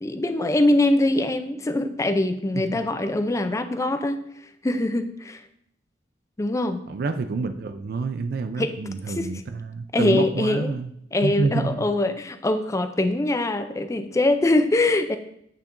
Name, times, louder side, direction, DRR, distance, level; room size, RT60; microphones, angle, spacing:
voice 1, 0.0-4.2 4.6-5.4 6.4-6.8 8.6-8.7 9.1-9.3 9.9-10.7 11.1-15.2, left 2 dB, 15° left, 9 dB, 0.4 m, -23 dB
voice 2, 6.9-10.9 11.2-11.8, right 4 dB, 55° right, 9 dB, 0.4 m, -28 dB
8.8 x 5.6 x 2.6 m, 0.72 s
head